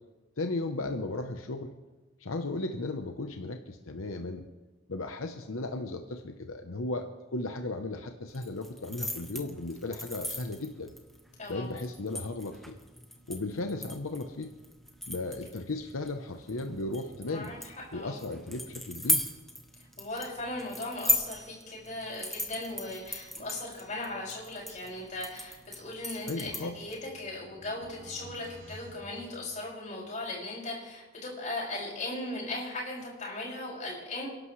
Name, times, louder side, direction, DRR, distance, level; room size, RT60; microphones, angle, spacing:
voice 1, 0.4-1.7 2.2-4.5 4.9-10.9 11.5-12.7 13.3-14.5 15.1-17.5 17.9-19.2 26.3-26.8, left 2 dB, 85° left, 5 dB, 0.9 m, -35 dB
sound 1, 8.3-27.0, equal, ahead, 1.1 m, -37 dB
voice 2, 17.3-18.2 20.0-34.3, left 2 dB, 35° left, -4 dB, 5.8 m, -38 dB
sound 2, 26.2-30.0, equal, 80° right, 2.6 m, -52 dB
28.5 x 11.5 x 3.3 m, 1.1 s
head